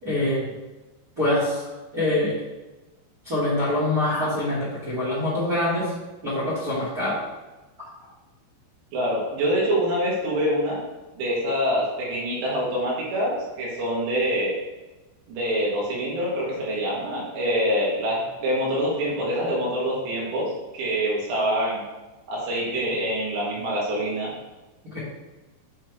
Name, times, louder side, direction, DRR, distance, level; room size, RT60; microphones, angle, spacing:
voice 1, 0.0-0.4 1.2-1.6 1.9-2.4 3.2-5.9 6.2-7.2 24.9-25.0, left 1 dB, 35° right, -7 dB, 1.4 m, -24 dB
voice 2, 8.9-10.8 11.2-14.6 15.3-21.8 22.3-24.3, equal, 70° right, -6 dB, 3.9 m, -25 dB
8.5 x 3.6 x 4.6 m, 1.1 s
omnidirectional pair, 5.6 m